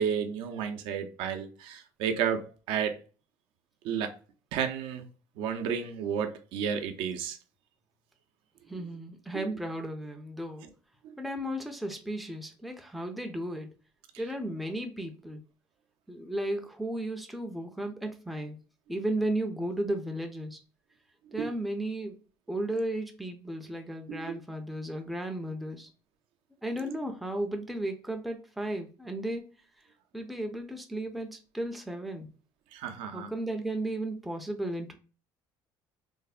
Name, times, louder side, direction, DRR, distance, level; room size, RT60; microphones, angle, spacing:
voice 1, 0.0-2.9 3.8-4.1 4.5-5.0 5.4-7.4 21.4-21.5 24.1-24.2 32.7-33.3, right 7 dB, 70° right, 0.5 m, -31 dB
voice 2, 8.7-10.7 11.2-13.7 14.2-15.4 16.1-18.6 18.9-20.6 21.3-22.2 22.5-25.9 26.6-29.4 30.1-32.3 33.1-34.9, right 1 dB, ahead, 0.4 m, -34 dB
3.2 x 2.0 x 2.3 m
cardioid pair, 140°, 9 cm